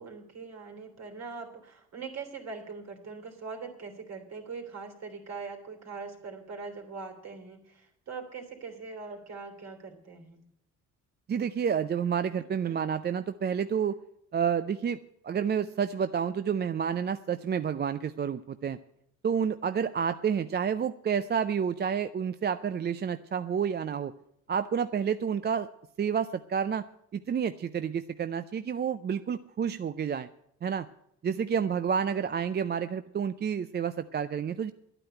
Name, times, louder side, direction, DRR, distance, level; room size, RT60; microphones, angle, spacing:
voice 1, 0.0-10.4 12.4-12.8, right 4 dB, 60° right, 3 dB, 3.2 m, -42 dB
voice 2, 11.3-14.0 14.3-15.0 15.2-18.8 19.2-24.1 24.5-25.7 26.0-26.9 27.1-30.3 30.6-30.9 31.2-34.7, right 7 dB, 35° right, 11 dB, 0.5 m, -29 dB
11.0 x 9.1 x 8.9 m, 0.74 s
cardioid pair, 90°, 30 cm